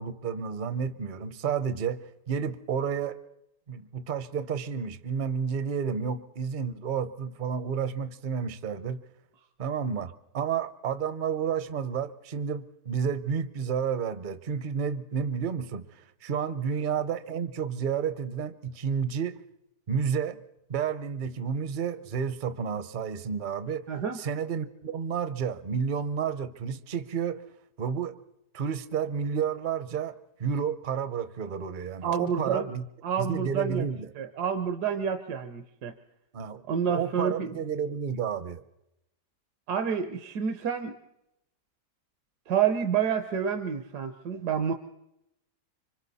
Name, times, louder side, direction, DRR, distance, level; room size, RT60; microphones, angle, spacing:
voice 1, 0.0-2.0 2.3-3.2 3.7-9.0 9.6-19.4 19.9-20.4 20.7-23.8 24.1-27.4 27.8-28.2 28.5-32.8 33.2-34.1 36.3-36.6 36.9-38.6, right 7 dB, 45° right, 13 dB, 0.7 m, -31 dB
voice 2, 23.9-24.2 32.0-32.7 33.0-33.8 34.2-35.9 36.7-37.6 39.7-41.0 42.5-44.7, right 7 dB, 75° right, 6 dB, 1.4 m, -28 dB
26.0 x 25.0 x 4.1 m, 0.86 s
omnidirectional pair, 1.8 m